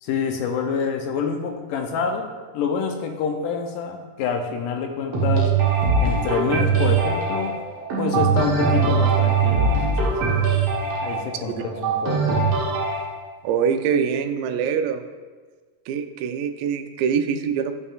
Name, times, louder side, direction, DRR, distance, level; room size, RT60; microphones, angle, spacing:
voice 1, 0.0-5.6 6.0-7.6 8.0-10.2 11.0-12.4, left 6 dB, 85° left, 4 dB, 2.2 m, -27 dB
sound 1, 5.1-13.0, right 4 dB, 60° right, 1.8 m, -21 dB
voice 2, 13.4-15.1 15.9-17.8, right 7 dB, 90° right, 9 dB, 2.3 m, -24 dB
12.5 x 5.5 x 2.4 m, 1.4 s
omnidirectional pair, 3.9 m